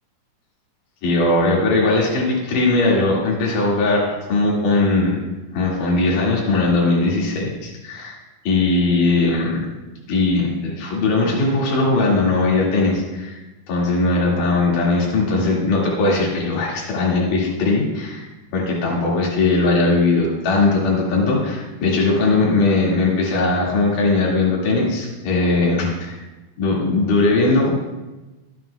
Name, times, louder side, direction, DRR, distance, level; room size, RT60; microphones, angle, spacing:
voice 1, 1.0-5.2 5.5-8.2 8.5-9.7 10.1-13.4 13.7-26.2 26.6-27.7, left 3 dB, 70° left, -3 dB, 3.7 m, -19 dB
21.5 x 9.1 x 2.3 m, 1.1 s
omnidirectional pair, 3.9 m